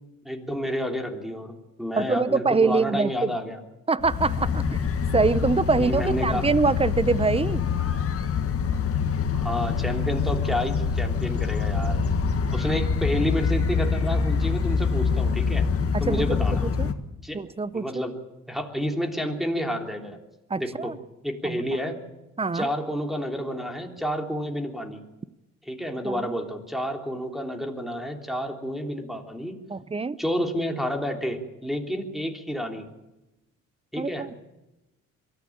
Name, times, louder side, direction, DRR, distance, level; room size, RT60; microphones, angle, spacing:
voice 1, 0.2-3.6 5.8-6.5 9.3-12.0 12.5-15.7 16.0-16.7 17.2-17.4 17.7-18.1 18.5-20.2 20.6-20.9 21.2-22.0 22.5-25.0 25.6-29.5 30.2-32.8 33.9-34.3, equal, ahead, 3 dB, 3.4 m, -30 dB
voice 2, 2.0-3.3 3.9-4.8 5.1-7.6 16.1-16.9 17.3-18.0 20.5-21.0 21.4-21.6 22.4-22.7 26.0-26.3 29.7-30.2 34.0-34.4, right 4 dB, 20° right, 17 dB, 0.8 m, -24 dB
sound 1, 4.0-16.9, left 5 dB, 50° left, 1.8 m, -25 dB
23.0 x 14.5 x 8.8 m, 0.99 s
cardioid pair, 90°, 30 cm